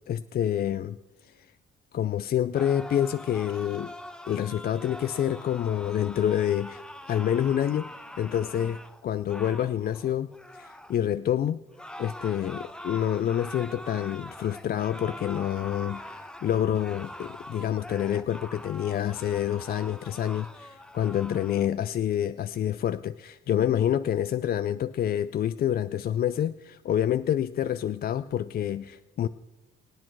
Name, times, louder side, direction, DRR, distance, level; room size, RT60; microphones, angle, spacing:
voice 1, 0.1-1.0 1.2-1.5 1.9-3.9 4.3-7.9 8.2-10.3 10.5-11.6 12.0-29.3, left 10 dB, 50° left, 13 dB, 0.4 m, -27 dB
sound 1, 2.5-11.0 11.7-21.7, left 1 dB, 5° left, 0.9 m, -43 dB
25.0 x 8.4 x 4.6 m, 1.1 s
cardioid pair, 90°, 20 cm